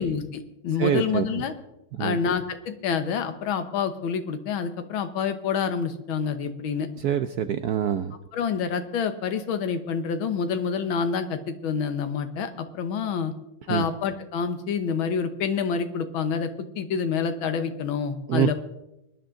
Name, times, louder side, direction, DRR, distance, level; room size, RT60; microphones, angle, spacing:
voice 1, 0.0-1.5 2.0-6.9 8.3-13.3 13.7-18.5, left 6 dB, 85° left, 8 dB, 1.9 m, -27 dB
voice 2, 0.8-1.3 2.0-2.2 7.0-8.1 13.7-13.8 18.3-18.5, right 9 dB, 70° right, 10 dB, 0.9 m, -25 dB
23.5 x 10.5 x 3.8 m, 0.89 s
omnidirectional pair, 2.2 m